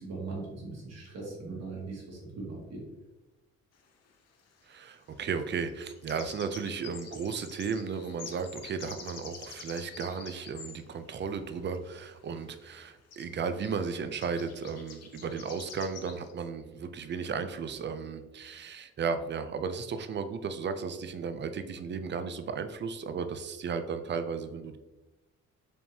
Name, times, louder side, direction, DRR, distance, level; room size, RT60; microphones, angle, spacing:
voice 1, 0.0-2.8, right 3 dB, 60° right, -3 dB, 1.5 m, -40 dB
sound 1, 3.7-3.8 5.6-10.8 12.5-12.6 12.8-12.9 13.1-13.3 13.6-13.8 14.1-16.3, left 6 dB, 55° left, 0.7 m, -47 dB
voice 2, 4.7-24.8, right 5 dB, 40° right, 9 dB, 0.4 m, -35 dB
4.3 x 3.5 x 2.7 m, 1.1 s
cardioid pair, 90°, 30 cm